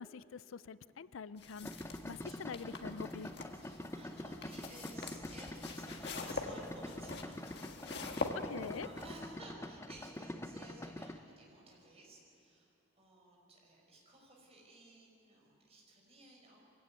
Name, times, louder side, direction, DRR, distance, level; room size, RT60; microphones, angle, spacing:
voice 1, 0.0-3.3 8.3-8.9, left 6 dB, 80° left, 17 dB, 0.5 m, -45 dB
sound 1, 1.4-9.0, left 3 dB, 55° left, 1.7 m, -45 dB
Idling, 1.6-11.2, left 1 dB, 15° left, 0.7 m, -45 dB
voice 2, 2.2-2.6 3.5-16.6, right 2 dB, 30° right, -2 dB, 5.7 m, -56 dB
23.5 x 16.5 x 9.4 m, 3.0 s
head